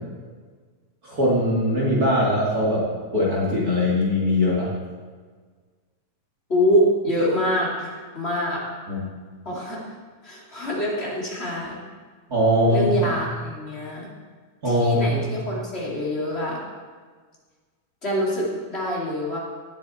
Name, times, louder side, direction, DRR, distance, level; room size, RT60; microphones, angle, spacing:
voice 1, 1.0-2.9 3.1-4.7 8.9-9.1 12.3-12.9 14.6-15.0, left 1 dB, 30° right, -5 dB, 2.5 m, -21 dB
voice 2, 6.5-8.6 9.4-9.8 10.2-11.8 12.7-14.1 14.6-16.6 18.0-19.4, equal, 20° left, -4 dB, 2.6 m, -25 dB
18.5 x 8.0 x 4.3 m, 1.5 s
omnidirectional pair, 3.5 m